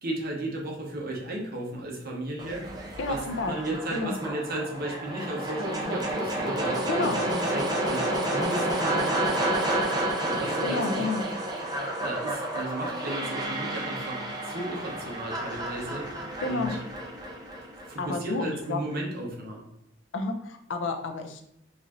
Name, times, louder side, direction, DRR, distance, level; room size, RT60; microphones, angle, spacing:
voice 1, 0.0-2.7 3.1-9.7 10.2-11.3 12.0-16.8 17.9-19.7, right 2 dB, 55° right, -1 dB, 0.9 m, -35 dB
sound 1, 2.4-18.4, right 1 dB, 20° right, 0.6 m, -30 dB
voice 2, 3.0-3.5 3.9-4.1 6.9-7.2 10.6-11.2 16.4-16.7 18.0-18.8 20.1-21.4, left 3 dB, 75° left, 6 dB, 0.5 m, -30 dB
4.2 x 2.5 x 2.9 m, 0.76 s
head